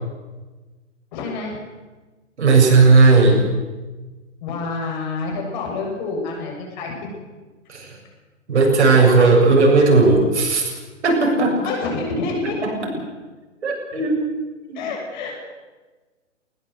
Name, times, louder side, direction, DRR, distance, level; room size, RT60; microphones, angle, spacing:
voice 1, 1.1-1.6 4.4-6.9 11.6-12.6 14.7-15.3, left 3 dB, 35° left, 0 dB, 7.4 m, -27 dB
voice 2, 2.4-3.4 7.7-7.9 8.5-10.7 11.0-11.7 12.4-12.8 13.6-14.2 14.7-14.8, right 3 dB, 60° right, 0 dB, 7.2 m, -15 dB
20.5 x 19.0 x 8.0 m, 1.3 s
figure-of-eight pair, 130°, 38 cm